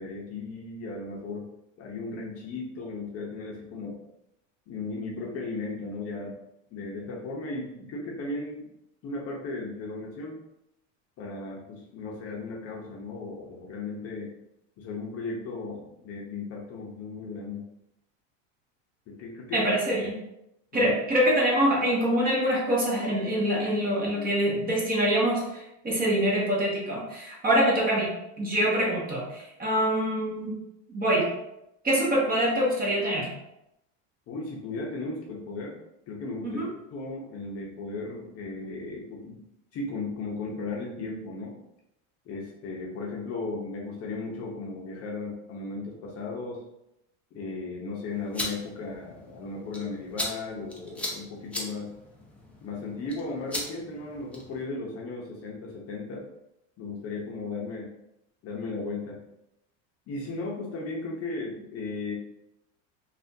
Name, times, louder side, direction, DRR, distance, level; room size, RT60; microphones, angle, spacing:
voice 1, 0.0-1.5 1.8-4.0 4.7-6.4 6.7-8.7 9.0-10.4 11.2-14.3 14.8-17.6 19.1-19.6 20.7-20.9 34.3-35.8 36.1-36.6 36.9-39.4 39.7-41.6 42.2-46.6 47.3-51.9 52.6-56.3 56.8-57.9 58.4-59.2 60.1-62.1, left 3 dB, 40° left, -2 dB, 0.7 m, -36 dB
voice 2, 19.5-20.1 20.7-28.1 28.4-30.5 30.9-31.3 31.8-33.3 36.4-36.7, equal, 20° right, -4 dB, 1.0 m, -25 dB
sound 1, 48.1-54.6, left 1 dB, 5° left, 0.5 m, -38 dB
3.3 x 2.4 x 2.7 m, 0.85 s
supercardioid pair, 120°, 39 cm